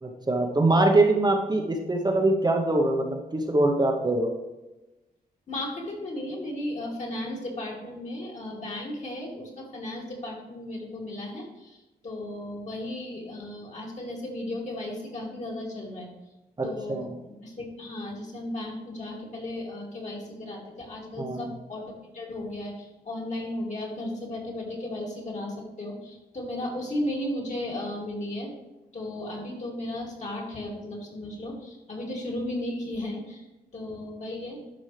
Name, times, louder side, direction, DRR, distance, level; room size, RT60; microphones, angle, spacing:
voice 1, 0.0-4.3 16.6-17.1 21.2-21.5, right 2 dB, 25° right, 1 dB, 0.9 m, -23 dB
voice 2, 5.5-16.1 16.6-17.1 17.4-28.5 28.9-33.5 33.7-34.6, left 1 dB, 45° left, -2 dB, 2.6 m, -35 dB
11.5 x 5.4 x 3.3 m, 1.0 s
cardioid pair, 105°, 16 cm